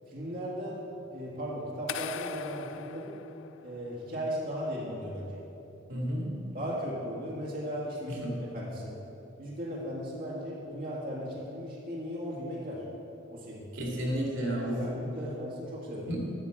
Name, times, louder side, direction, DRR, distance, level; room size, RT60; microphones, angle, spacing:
voice 1, 0.1-3.1 3.6-5.4 6.5-8.9 9.4-12.8 13.3-13.7 14.8-16.1, equal, 45° right, -6 dB, 1.9 m, -37 dB
sound 1, 1.9-4.0, left 9 dB, 85° left, 0.3 m, -40 dB
voice 2, 5.9-6.4 8.1-8.4 13.7-14.9 16.1-16.3, equal, 75° right, -2 dB, 2.3 m, -32 dB
9.4 x 6.1 x 7.6 m, 2.9 s
head